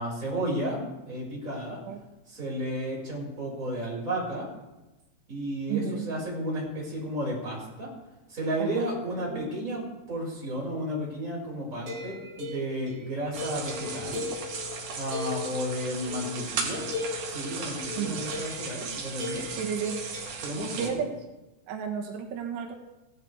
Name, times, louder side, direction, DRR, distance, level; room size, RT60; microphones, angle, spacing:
voice 1, 0.0-1.8 2.3-4.5 5.3-7.9 8.3-9.8 10.1-14.2 14.9-16.9 17.3-19.4 20.4-21.0, right 1 dB, 20° right, -4 dB, 5.1 m, -33 dB
voice 2, 5.7-6.1 8.6-9.5 18.0-18.3 19.5-20.0 20.8-21.3 21.7-22.7, right 7 dB, 85° right, 2 dB, 3.4 m, -33 dB
sound 1, 11.8-16.2 16.7-20.2, left 3 dB, 40° right, 2.9 m, -39 dB
sound 2, 13.3-20.9, right 5 dB, 60° right, 2.5 m, -36 dB
sound 3, 13.6-18.4, left 8 dB, 30° left, 3.6 m, -42 dB
16.5 x 12.5 x 3.5 m, 1.0 s
omnidirectional pair, 4.9 m